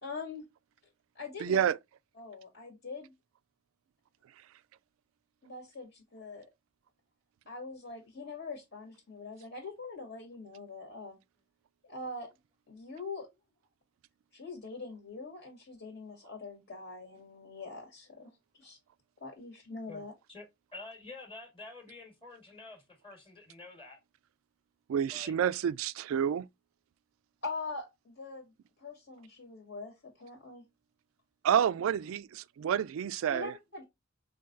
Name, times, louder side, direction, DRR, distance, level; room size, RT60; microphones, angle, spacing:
voice 1, 0.0-0.4 1.1-1.6 2.2-3.1 5.4-6.5 7.5-11.2 11.8-12.3 12.7-13.3 14.3-18.3 18.6-18.8 19.2-20.1 27.4-30.6 33.3-33.8, left 3 dB, 65° left, 1.9 m, -43 dB
voice 2, 1.4-1.8 24.9-26.5 31.4-33.5, right 8 dB, 85° right, 0.3 m, -29 dB
voice 3, 20.7-24.0 25.1-25.3, left 3 dB, 25° left, 1.6 m, -48 dB
5.7 x 3.4 x 2.5 m
head